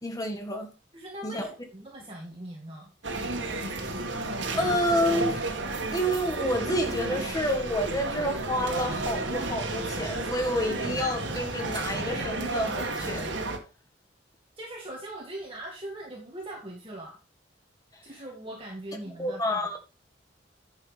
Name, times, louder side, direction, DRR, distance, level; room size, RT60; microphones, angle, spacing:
voice 1, 0.0-0.7 1.2-1.5 4.5-13.3 19.2-19.7, equal, 20° left, 1.8 m, -29 dB
voice 2, 0.9-2.9 14.6-17.2 18.0-19.7, right 1 dB, 30° right, 2.0 m, -40 dB
sound 1, 3.0-13.6, right 2 dB, 70° right, 1.9 m, -32 dB
10.5 x 7.0 x 3.4 m
head